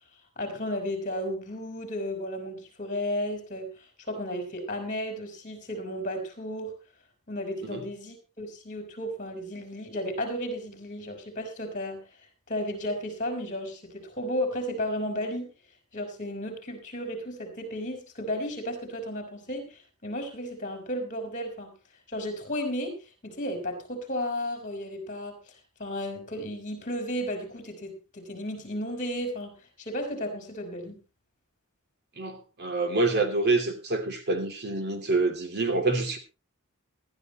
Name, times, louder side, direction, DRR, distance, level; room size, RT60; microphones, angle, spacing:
voice 1, 0.4-6.7 7.3-12.0 12.5-15.5 15.9-21.7 22.1-25.4 25.8-31.0, equal, 35° left, 4.5 m, -34 dB
voice 2, 32.2-36.2, right 3 dB, 50° right, 2.8 m, -27 dB
19.0 x 12.5 x 3.1 m
head